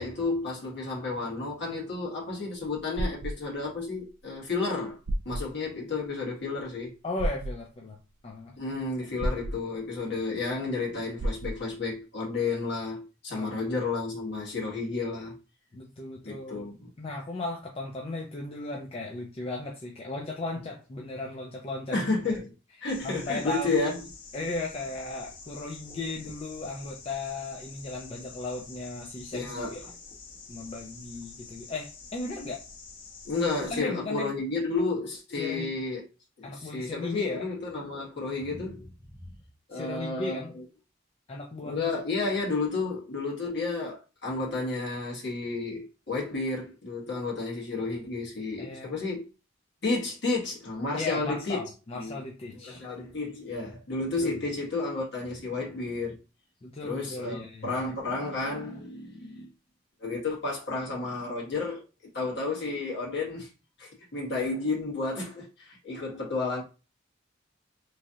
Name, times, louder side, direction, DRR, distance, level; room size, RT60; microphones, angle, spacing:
voice 1, 0.0-5.0 5.2-6.9 8.6-15.4 16.2-16.9 21.9-22.5 22.8-24.0 29.3-29.8 33.2-36.0 36.5-38.9 39.7-40.6 41.6-49.2 49.8-51.6 51.9-52.2 52.6-56.2 56.8-59.5 60.0-61.8 62.1-63.5 63.8-66.6, left 3 dB, 60° left, 1.4 m, -31 dB
sound 1, 2.7-3.4 4.6-4.7 5.1-5.5 7.2-7.5 9.2-9.6 11.2-11.6, right 1 dB, 80° right, 0.4 m, -30 dB
voice 2, 7.0-8.0 8.2-8.6 13.3-13.6 15.7-16.7 17.0-22.0 23.0-23.9 24.3-29.9 30.5-32.6 33.7-34.3 35.4-35.8 36.4-37.5 39.7-40.5 41.3-41.9 48.6-49.0 50.9-52.8 54.2-54.4 56.6-57.7, left 2 dB, 30° left, 0.4 m, -36 dB
sound 2, 22.9-33.8, left 4 dB, 80° left, 1.0 m, -47 dB
3.1 x 2.4 x 2.7 m
head